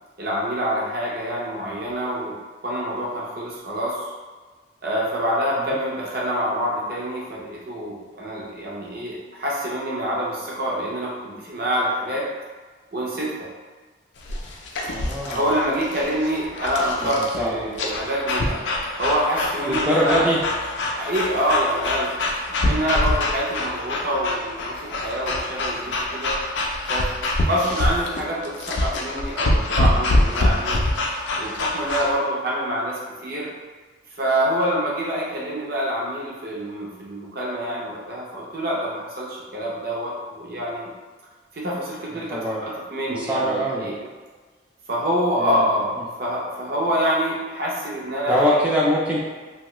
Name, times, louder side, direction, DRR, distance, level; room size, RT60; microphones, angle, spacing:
voice 1, 0.2-2.3 2.6-4.1 4.8-12.3 12.9-13.5 15.3-18.6 19.0-20.3 20.9-22.1 22.6-26.4 26.9-27.1 27.4-30.7 31.4-33.5 34.2-40.9 41.5-44.0 44.9-45.9 46.2-48.6, equal, 50° right, -4 dB, 0.7 m, -26 dB
sound 1, 14.2-32.2, left 1 dB, 65° left, 0.4 m, -25 dB
voice 2, 14.9-15.4 17.0-17.7 19.7-20.4 42.1-42.6 43.1-43.9 45.4-45.7 48.3-49.2, equal, 5° right, -5 dB, 0.4 m, -23 dB
2.8 x 2.3 x 3.0 m, 1.4 s
head